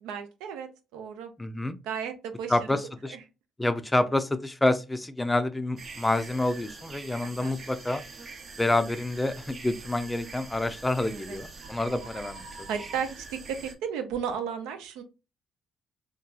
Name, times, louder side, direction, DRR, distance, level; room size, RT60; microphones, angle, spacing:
voice 1, 0.0-1.3 1.8-2.6 3.1-3.2 7.2-7.5 11.0-11.4 12.7-15.0, right 7 dB, 85° right, 0.4 m, -34 dB
voice 2, 1.4-1.8 2.5-3.2 3.6-8.0 8.6-12.7, left 2 dB, 15° left, 0.4 m, -28 dB
sound 1, 5.8-13.7, right 3 dB, 50° right, 0.7 m, -44 dB
2.8 x 2.3 x 2.3 m
supercardioid pair, 70°, 0 cm